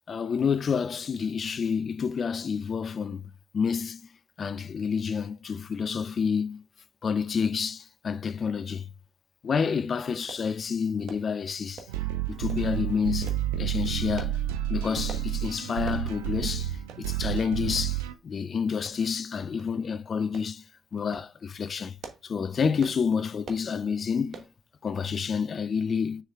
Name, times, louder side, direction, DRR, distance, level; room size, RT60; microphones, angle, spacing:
voice 1, 0.1-3.2 3.5-4.0 4.4-6.6 7.0-8.9 9.4-11.8 12.3-14.4 14.7-20.6 20.9-22.0 22.2-24.4 24.8-26.2, left 6 dB, 50° left, 0.6 m, -29 dB
sound 1, 10.3-10.5 11.1-11.3 11.8-12.0 12.5-12.7 13.3-13.5 14.2-14.4 15.1-15.3 15.9-16.1 16.4-16.5 16.9-17.0 17.8-17.9 18.9-19.2 19.6-19.7 20.3-20.5 21.0-21.3 21.8-22.3 22.8-23.0 23.4-23.7 24.3-24.5 25.0-25.2 25.5-25.6, right 5 dB, 60° right, 1.2 m, -44 dB
sound 2, 11.9-18.1, right 12 dB, 85° right, 0.6 m, -30 dB
6.5 x 4.8 x 3.4 m
hypercardioid pair, 45°, 0 cm